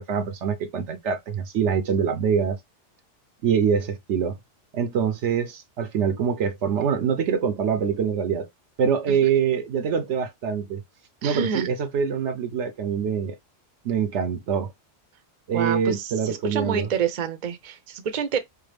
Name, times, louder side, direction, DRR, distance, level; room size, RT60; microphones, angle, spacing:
voice 1, 0.0-2.6 3.4-4.4 4.7-8.5 8.8-10.8 11.2-13.4 13.8-14.7 15.5-16.9, right 7 dB, 70° right, 0.9 m, -24 dB
voice 2, 11.2-11.7 15.5-18.4, right 7 dB, 45° right, 0.6 m, -28 dB
4.6 x 2.2 x 3.3 m
omnidirectional pair, 1.3 m